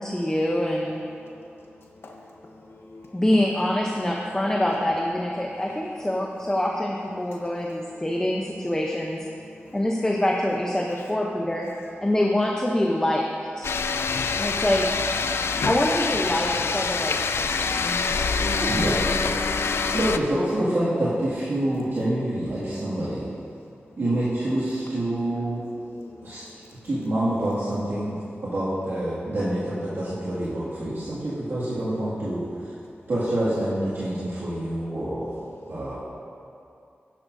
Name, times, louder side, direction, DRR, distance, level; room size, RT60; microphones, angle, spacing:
voice 1, 0.0-1.0 3.1-9.2 9.7-11.7 12.0-13.7 14.4-14.9 15.6-18.3 18.6-18.7, left 1 dB, 15° left, -1 dB, 0.7 m, -25 dB
voice 2, 1.0-3.3 5.4-6.7 7.1-8.7 9.3-9.8 10.9-11.1 13.7-14.6 15.2-15.7 16.9-18.8 19.4-20.0 21.6-22.0 23.5-24.0 24.5-26.9 28.0-28.5 29.1-29.3 30.4-31.3 32.5-33.1 34.1-36.0, left 2 dB, 70° left, 0 dB, 0.9 m, -50 dB
sound 1, 13.6-20.2, left 5 dB, 85° left, 0.3 m, -25 dB
Bass guitar, 18.4-22.5, equal, 55° left, 2.2 m, -37 dB
voice 3, 19.9-23.3 24.0-25.6 26.2-26.5 26.8-28.2 28.4-32.7 33.1-35.3 35.7-36.0, right 1 dB, 75° right, -12 dB, 2.1 m, -27 dB
12.5 x 10.0 x 2.7 m, 2.6 s
wide cardioid pair, 95°, 4 cm